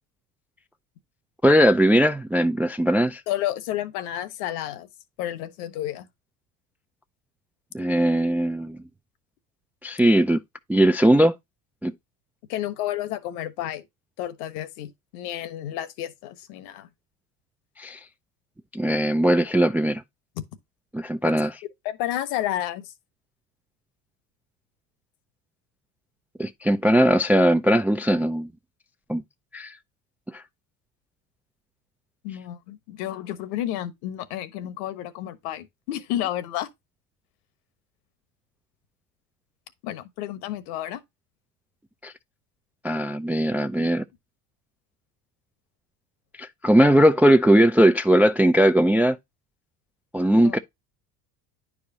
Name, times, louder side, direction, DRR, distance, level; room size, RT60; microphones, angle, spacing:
voice 1, 1.4-3.2 7.7-8.8 9.8-10.4 10.7-11.3 11.8-11.9 17.8-18.0 18.7-20.0 20.9-21.6 26.4-28.5 29.1-29.2 29.5-29.7 30.3-30.4 42.0-42.1 42.8-44.0 46.4-49.2 50.1-50.6, right 1 dB, 5° right, 0.3 m, -19 dB
voice 2, 3.3-4.9 5.2-6.1 12.5-13.8 14.2-16.9 21.8-22.9 32.2-36.7 39.8-41.0 50.4-50.5, left 13 dB, 75° left, 1.3 m, -31 dB
10.0 x 4.8 x 2.7 m
hypercardioid pair, 80°, 47 cm